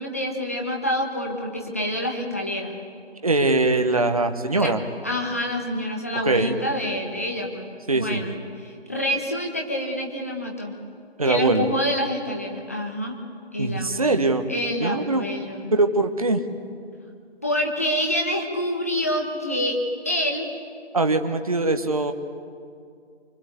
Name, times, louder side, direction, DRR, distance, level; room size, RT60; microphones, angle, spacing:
voice 1, 0.0-2.7 4.6-4.7 5.0-10.7 11.2-13.1 13.5-15.7 17.4-19.8 20.0-20.5, equal, 15° left, 1 dB, 1.0 m, -27 dB
voice 2, 3.2-4.8 6.2-6.6 7.9-8.3 11.2-11.7 13.6-14.4 14.8-15.3 15.7-16.4 20.9-22.1, right 2 dB, 35° right, 7 dB, 1.1 m, -22 dB
25.0 x 23.0 x 8.2 m, 2.3 s
figure-of-eight pair, 170°, 33 cm